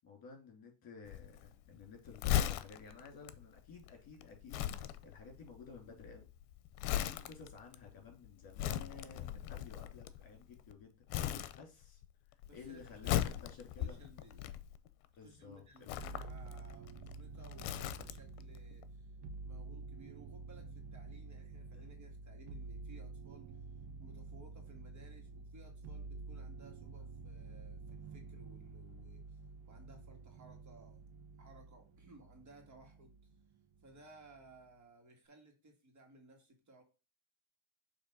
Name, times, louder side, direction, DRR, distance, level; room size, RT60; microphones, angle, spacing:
voice 1, 0.0-6.3 6.8-12.0 12.5-14.0 15.2-16.0 21.7-21.8, left 5 dB, 45° left, 2 dB, 2.8 m, -54 dB
Crumpling crinkling, 1.0-10.7 11.1-12.1 12.3-15.1 15.8-18.4 18.7-18.8, left 11 dB, 80° left, 0.8 m, -38 dB
voice 2, 12.5-13.5 13.8-14.5 15.2-19.1 19.4-23.5 24.0-29.4 29.7-31.0 31.4-33.2 33.8-36.8, right 2 dB, 35° right, 3 dB, 1.8 m, -59 dB
sound 1, 16.0-33.4 33.7-34.5, right 4 dB, 60° right, 1.0 m, -49 dB
6.9 x 3.0 x 5.4 m, 0.31 s
cardioid pair, 135°, 50 cm